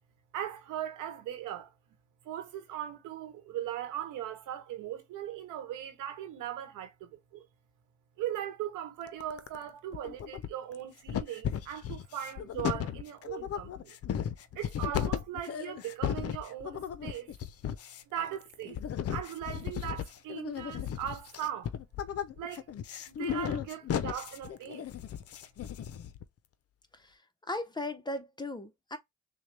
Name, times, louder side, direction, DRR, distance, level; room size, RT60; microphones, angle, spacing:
voice 1, 0.3-1.7 2.2-7.5 8.2-14.0 14.5-17.3 18.1-18.8 19.1-21.7 22.4-22.6 23.1-24.9, right 11 dB, 90° right, 1.1 m, -39 dB
sound 1, 9.1-9.6 9.9-10.8 11.1-26.2, left 9 dB, 50° left, 0.6 m, -35 dB
voice 2, 27.5-29.0, left 2 dB, 15° left, 0.7 m, -37 dB
6.2 x 2.2 x 3.2 m
cardioid pair, 90°, 30 cm